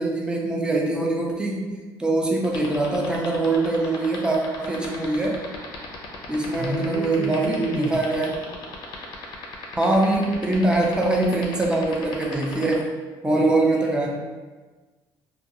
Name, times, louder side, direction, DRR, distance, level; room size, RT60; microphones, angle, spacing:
voice 1, 0.0-5.4 6.3-8.3 9.8-12.9 13.2-14.1, right 2 dB, 10° right, -1 dB, 0.4 m, -23 dB
sound 1, 2.4-12.7, left 5 dB, 55° left, 0.5 m, -36 dB
voice 2, 6.5-7.9 13.3-14.1, equal, 65° right, -5 dB, 1.0 m, -31 dB
2.4 x 2.2 x 2.8 m, 1.3 s
cardioid pair, 125°, 9 cm